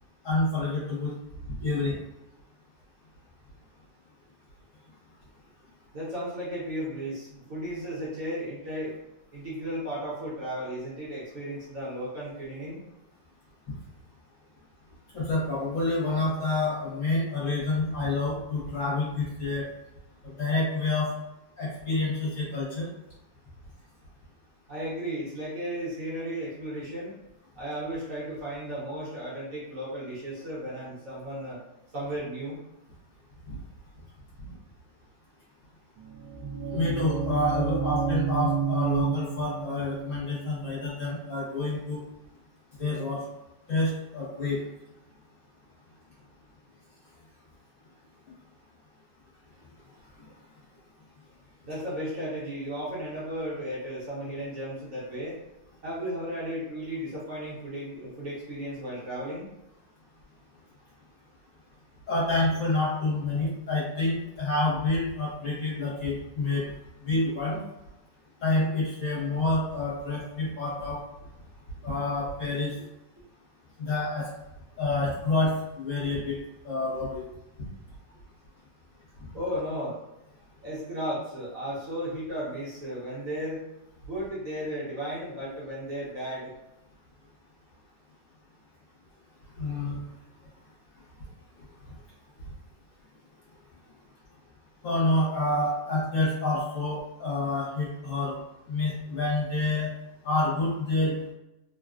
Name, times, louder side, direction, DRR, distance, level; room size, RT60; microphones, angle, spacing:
voice 1, 0.2-1.1 1.6-2.0 15.1-19.6 20.2-21.1 21.6-22.9 33.5-33.6 36.7-42.0 42.8-43.2 43.7-44.6 62.1-66.7 67.0-67.6 68.4-71.0 71.8-72.8 73.8-74.3 74.8-76.4 76.6-77.2 79.2-79.3 89.6-90.0 94.8-98.4 98.7-99.9 100.2-101.1, left 2 dB, 55° left, -7 dB, 1.1 m, -28 dB
voice 2, 5.9-9.0 9.3-12.8 24.7-27.1 27.5-31.6 31.9-32.6 51.6-55.4 55.8-59.5 79.3-80.0 80.6-83.6 84.0-86.5, equal, 55° right, -8 dB, 1.1 m, -34 dB
sound 1, 36.0-41.9, right 6 dB, 75° right, 0.7 m, -31 dB
3.3 x 2.2 x 2.4 m, 0.90 s
omnidirectional pair, 1.9 m